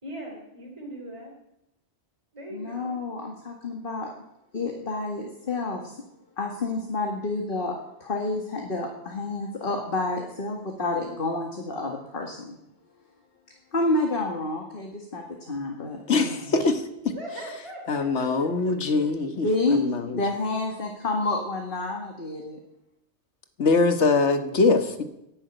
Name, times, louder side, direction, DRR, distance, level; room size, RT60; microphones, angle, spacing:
voice 1, 0.0-1.3 2.3-2.9 17.1-19.1, right 1 dB, 25° right, -2 dB, 3.2 m, -40 dB
voice 2, 2.5-4.1 4.5-6.0 6.4-12.6 13.7-16.4 19.4-19.8 20.1-22.6, left 2 dB, 50° left, 2 dB, 2.1 m, -29 dB
voice 3, 16.1-17.1 17.9-20.2 23.6-25.0, left 3 dB, 85° left, 8 dB, 1.7 m, -23 dB
11.0 x 10.5 x 9.1 m, 0.86 s
omnidirectional pair, 1.1 m